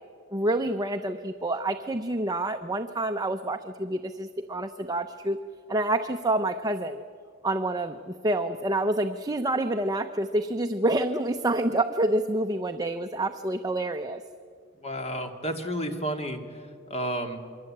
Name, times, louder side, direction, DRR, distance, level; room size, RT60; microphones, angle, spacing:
voice 1, 0.3-5.4 5.7-7.0 7.4-14.2, right 1 dB, 20° right, 7 dB, 0.8 m, -27 dB
voice 2, 14.8-17.4, equal, 30° left, 5 dB, 2.5 m, -32 dB
28.5 x 23.0 x 8.8 m, 2.2 s
head